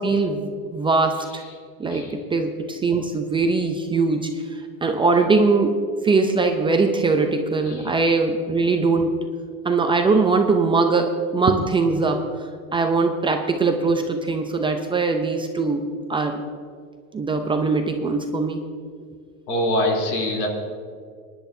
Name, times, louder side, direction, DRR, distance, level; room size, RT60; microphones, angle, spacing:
voice 1, 0.0-1.4 1.8-4.4 4.8-5.8 6.0-9.2 9.6-12.3 12.7-16.4 17.1-18.6, right 3 dB, 10° right, 4 dB, 0.5 m, -21 dB
voice 2, 19.5-20.5, left 1 dB, 85° left, -1 dB, 3.3 m, -24 dB
25.0 x 10.5 x 2.7 m, 2.1 s
supercardioid pair, 130°, 44 cm